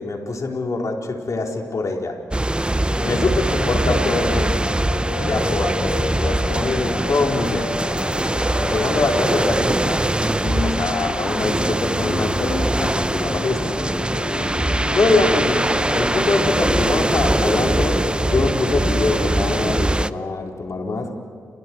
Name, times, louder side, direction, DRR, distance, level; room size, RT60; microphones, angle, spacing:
voice 1, 0.0-2.2 3.0-4.7 5.2-7.7 8.7-13.8 14.9-21.1, left 3 dB, 60° left, 1 dB, 4.4 m, -24 dB
sound 1, 2.3-20.1, right 1 dB, 15° right, 0.8 m, -22 dB
sound 2, 2.9-20.0, left 4 dB, 75° left, 2.7 m, -31 dB
30.0 x 26.5 x 4.8 m, 2.3 s
supercardioid pair, 45°, 6 cm